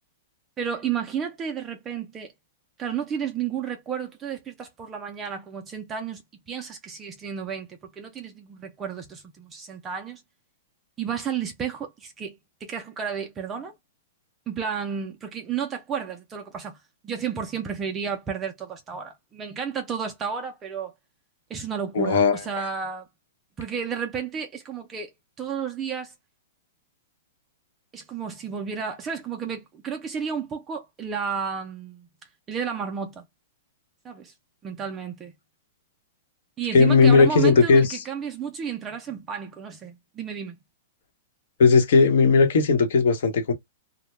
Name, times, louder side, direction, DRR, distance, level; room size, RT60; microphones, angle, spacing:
voice 1, 0.6-2.3 2.8-10.2 11.0-13.7 14.5-20.9 21.5-23.1 23.6-25.1 25.4-26.1 27.9-32.1 32.5-33.3 34.0-34.3 34.6-35.3 36.6-40.6, right 7 dB, 15° right, 0.3 m, -32 dB
voice 2, 21.9-22.7 36.7-38.0 41.6-43.5, left 4 dB, 65° left, 0.9 m, -17 dB
2.1 x 2.0 x 3.0 m
hypercardioid pair, 160°, 0 cm